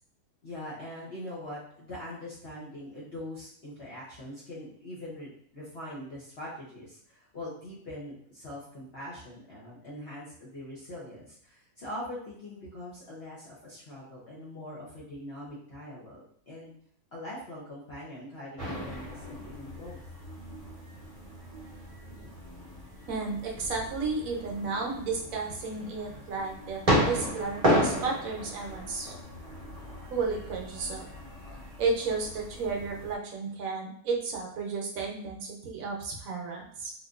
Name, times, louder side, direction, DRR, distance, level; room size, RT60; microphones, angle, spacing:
voice 1, 0.4-16.7 17.1-20.1, left 1 dB, 50° left, -7 dB, 1.0 m, -42 dB
sound 1, 18.6-33.1, equal, 30° right, 0.8 m, -34 dB
voice 2, 23.1-29.1 30.1-31.0 31.8-36.9, right 4 dB, 65° right, 0 dB, 1.1 m, -33 dB
3.5 x 2.6 x 2.4 m, 0.62 s
omnidirectional pair, 1.6 m